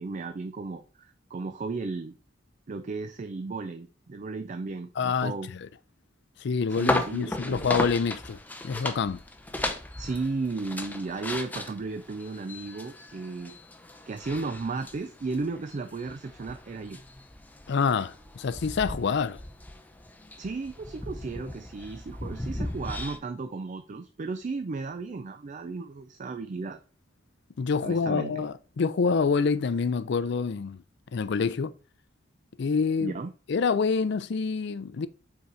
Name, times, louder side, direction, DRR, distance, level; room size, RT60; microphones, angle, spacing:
voice 1, 0.0-2.1 2.7-5.5 6.8-7.7 10.0-13.6 14.1-17.0 20.4-26.8 27.8-28.4 33.0-33.3, right 3 dB, 40° right, 0.4 m, -34 dB
voice 2, 5.0-5.7 6.4-8.4 8.6-9.2 17.7-19.4 27.6-30.8 31.1-31.7 32.6-33.1 33.5-35.1, left 5 dB, 65° left, 0.4 m, -27 dB
sound 1, 6.7-23.2, left 1 dB, 10° left, 0.6 m, -36 dB
5.6 x 4.0 x 4.4 m
head